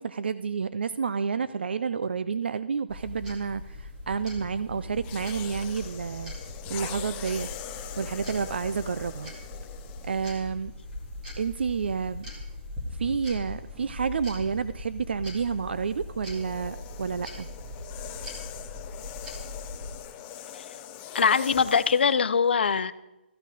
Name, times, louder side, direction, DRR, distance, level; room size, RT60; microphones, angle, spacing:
voice 1, 0.0-6.3 6.7-7.5 8.0-9.3 10.0-10.7 11.4-12.3 13.0-17.5, right 6 dB, 65° right, 14 dB, 0.4 m, -30 dB
sound 1, 2.9-20.0, left 2 dB, 10° right, 1.4 m, -40 dB
sound 2, 5.0-10.5 11.3-11.5 15.5-22.2, left 10 dB, 15° left, 0.5 m, -42 dB
voice 2, 21.1-22.9, left 6 dB, 65° left, 15 dB, 0.6 m, -22 dB
14.0 x 9.2 x 5.0 m, 0.99 s
hypercardioid pair, 170°, 6 cm